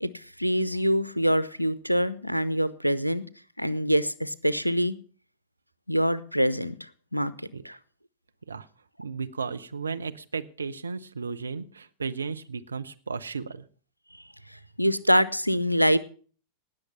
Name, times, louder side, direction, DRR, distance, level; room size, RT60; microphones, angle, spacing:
voice 1, 0.0-3.2 3.6-4.9 5.9-7.3 7.6-7.8 14.8-16.0, equal, 90° left, 0.6 m, -25 dB
voice 2, 9.0-13.7, right 5 dB, 75° right, 0.7 m, -34 dB
18.5 x 6.5 x 5.6 m
figure-of-eight pair, 90°, 0 cm